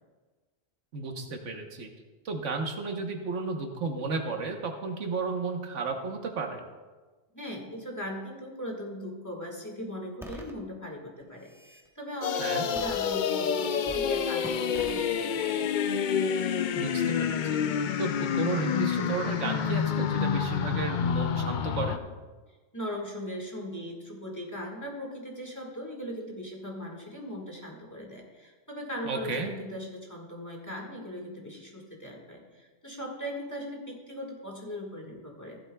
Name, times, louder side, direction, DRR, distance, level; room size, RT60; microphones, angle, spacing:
voice 1, 0.9-1.9 2.2-6.6 12.4-12.7 16.7-17.6 18.0-22.0 29.0-29.5, right 3 dB, 80° right, 4 dB, 1.4 m, -33 dB
voice 2, 7.3-15.6 22.7-35.6, equal, 15° left, -1 dB, 1.7 m, -39 dB
sound 1, 10.2-10.5 11.2-11.9 12.8-13.5 13.8-14.1 14.4-15.0, equal, 5° right, 1.0 m, -44 dB
sound 2, 12.2-22.0, left 7 dB, 60° left, 0.5 m, -28 dB
15.0 x 12.0 x 2.3 m, 1.3 s
omnidirectional pair, 1.2 m